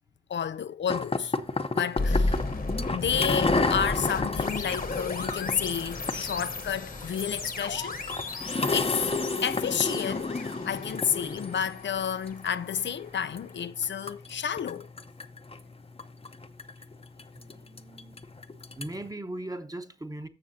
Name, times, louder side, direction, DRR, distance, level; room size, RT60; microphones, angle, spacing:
voice 1, 0.3-1.4 1.8-2.4 2.9-8.0 8.4-9.1 9.4-14.9, left 8 dB, 85° left, 0.4 m, -31 dB
sound 1, 0.9-19.1, left 3 dB, 35° left, 0.7 m, -32 dB
sound 2, 2.0-13.0, left 2 dB, 55° left, 1.2 m, -34 dB
voice 2, 17.3-18.3 18.7-20.3, right 1 dB, 20° right, 1.0 m, -39 dB
14.5 x 6.2 x 2.7 m
wide cardioid pair, 80°, 18 cm